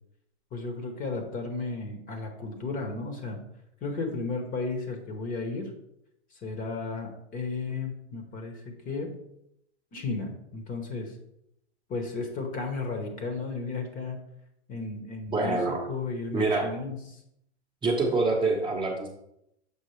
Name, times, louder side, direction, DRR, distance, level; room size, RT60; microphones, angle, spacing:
voice 1, 0.5-3.4 3.8-5.7 6.3-9.2 9.9-11.1 11.9-14.2 14.7-17.2, left 3 dB, 25° left, 4 dB, 1.1 m, -34 dB
voice 2, 15.3-15.8 16.3-16.7 17.8-19.1, right 3 dB, 15° right, -1 dB, 1.0 m, -26 dB
7.0 x 4.9 x 3.2 m, 0.78 s
hypercardioid pair, 135°, 34 cm